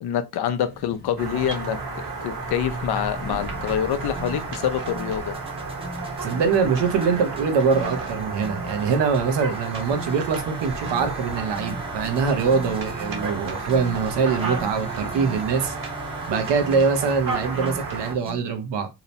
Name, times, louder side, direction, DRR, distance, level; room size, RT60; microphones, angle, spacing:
voice 1, 0.0-5.3, left 9 dB, 65° left, 0.5 m, -26 dB
sound 1, 0.6-18.3, equal, 25° left, 0.9 m, -43 dB
sound 2, 1.2-18.1, right 4 dB, 50° right, 1.0 m, -32 dB
sound 3, 3.4-18.4, right 1 dB, 15° right, 0.5 m, -40 dB
voice 2, 6.2-15.7 16.3-18.9, right 5 dB, 85° right, 0.7 m, -23 dB
2.8 x 2.0 x 2.6 m
cardioid pair, 85°, 42 cm